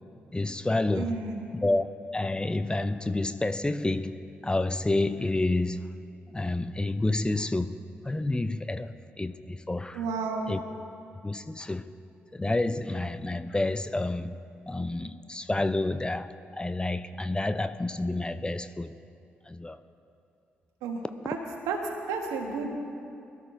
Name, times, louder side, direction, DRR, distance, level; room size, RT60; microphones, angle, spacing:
voice 1, 0.3-1.2 1.5-1.9 2.1-4.2 4.4-5.9 6.3-10.0 10.5-10.6 11.2-11.8 12.3-14.3 14.7-18.9 19.5-19.8, left 2 dB, 15° left, 0.5 m, -29 dB
voice 2, 0.9-1.5 9.9-10.5 20.8-21.4 21.7-21.8 22.1-22.7, right 5 dB, 70° right, 1.4 m, -32 dB
22.0 x 13.0 x 2.7 m
figure-of-eight pair, 40°, 6 cm